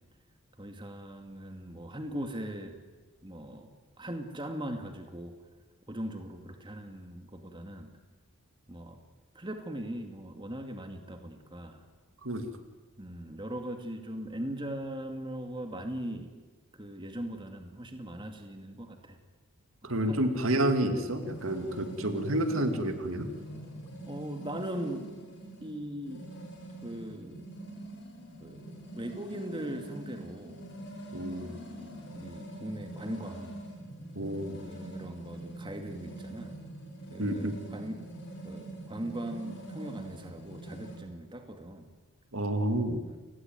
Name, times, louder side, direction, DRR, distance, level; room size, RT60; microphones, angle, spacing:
voice 1, 0.6-2.8 3.2-3.7 4.0-5.4 5.9-7.9 8.7-9.0 9.3-11.8 13.0-16.3 16.7-19.2 19.8-20.2 24.1-25.1 25.6-26.3 26.8-27.5 28.4-30.6 31.4-33.6 34.7-36.5 37.1-38.1 38.4-41.9 43.0-43.2, right 1 dB, 20° right, 5 dB, 2.3 m, -40 dB
voice 2, 19.8-23.3 31.1-31.5 34.2-34.6 37.2-37.6 42.3-43.0, right 1 dB, 65° right, 7 dB, 2.4 m, -29 dB
sound 1, 21.1-41.0, right 1 dB, 50° left, 7.8 m, -44 dB
29.5 x 20.0 x 9.4 m, 1.3 s
head